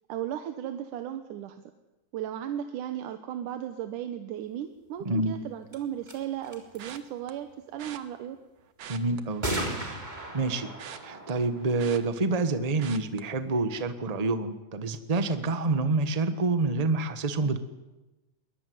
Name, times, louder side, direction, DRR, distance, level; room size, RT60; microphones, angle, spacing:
voice 1, 0.1-1.6 2.1-8.4, right 10 dB, 90° right, 8 dB, 2.7 m, -35 dB
voice 2, 5.0-5.4 8.9-9.5 9.8-10.0 10.3-10.7 11.0-17.6, right 3 dB, 45° right, 10 dB, 0.4 m, -27 dB
sound 1, 5.7-5.8 6.0-6.2 6.4-7.0 9.4-12.8, right 1 dB, 15° right, 3.6 m, -36 dB
sound 2, 6.8-7.3 7.8-8.0 8.7-9.9 10.3-12.5 12.8-13.2 13.7-13.9 14.2-14.3, right 9 dB, 65° right, 2.5 m, -45 dB
23.0 x 21.0 x 9.6 m, 1.0 s
omnidirectional pair, 3.5 m